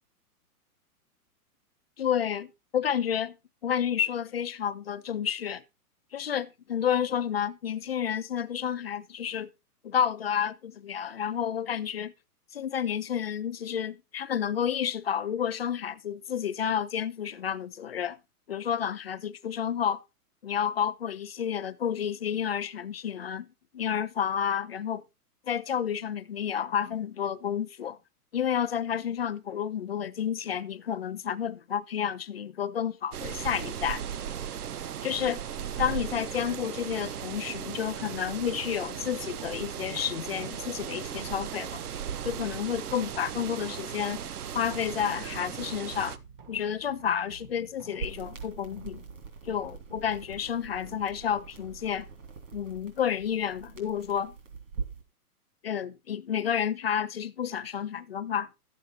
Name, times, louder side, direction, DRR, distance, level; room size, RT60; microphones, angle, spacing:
voice 1, 2.0-3.4 3.6-5.6 6.1-9.5 9.8-12.1 12.5-18.2 18.5-20.0 20.4-23.5 23.7-25.0 25.5-28.0 28.3-34.0 35.0-35.4 35.8-41.8 42.2-44.2 44.5-46.2 46.5-49.0 49.4-52.1 52.5-54.3 55.6-58.5, left 8 dB, 45° left, 0.5 m, -30 dB
sound 1, 33.1-46.2, right 9 dB, 70° right, 0.9 m, -37 dB
sound 2, 37.8-52.1, right 6 dB, 35° right, 1.1 m, -53 dB
sound 3, 48.0-55.0, right 5 dB, 55° right, 3.4 m, -43 dB
12.0 x 7.9 x 4.1 m
hypercardioid pair, 165°, 46 cm